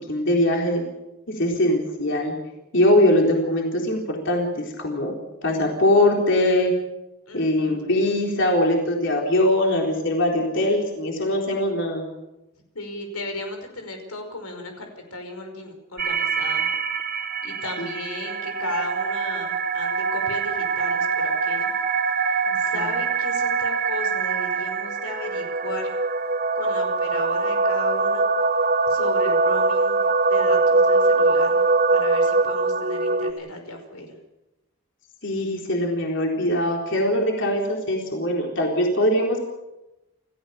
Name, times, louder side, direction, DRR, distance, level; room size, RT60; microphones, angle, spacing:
voice 1, 0.1-0.9 1.3-2.3 2.7-6.7 7.3-12.1 17.8-17.9 22.5-22.8 35.2-39.4, left 1 dB, 55° left, 0 dB, 3.9 m, -22 dB
voice 2, 7.3-7.8 12.8-16.7 17.4-21.7 22.2-26.0 26.5-28.3 28.9-30.0 30.3-31.6 31.9-34.1, left 2 dB, 90° left, 5 dB, 5.2 m, -35 dB
sound 1, 16.0-33.3, right 4 dB, 45° right, 2.6 m, -23 dB
28.5 x 15.5 x 7.0 m, 0.96 s
head